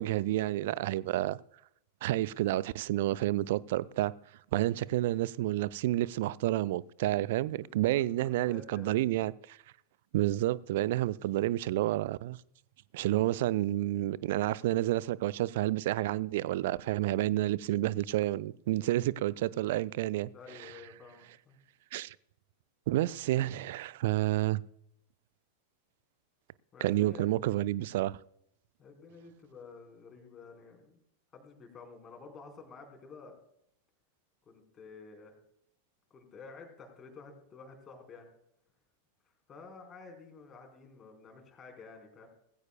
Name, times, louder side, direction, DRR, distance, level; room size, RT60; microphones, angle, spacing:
voice 1, 0.0-1.4 2.0-4.1 4.5-9.6 10.1-12.4 12.9-20.3 20.6-20.7 21.9-22.2 22.9-24.6 26.8-28.2, right 15 dB, 55° right, 0.4 m, -30 dB
voice 2, 7.6-8.0 8.4-9.0 20.3-21.6 26.7-27.3 28.8-31.0 31.3-33.3 34.5-35.3 36.1-38.3 39.5-42.3, left 4 dB, 25° left, 4.5 m, -51 dB
19.5 x 16.0 x 2.3 m
figure-of-eight pair, 90°, 0 cm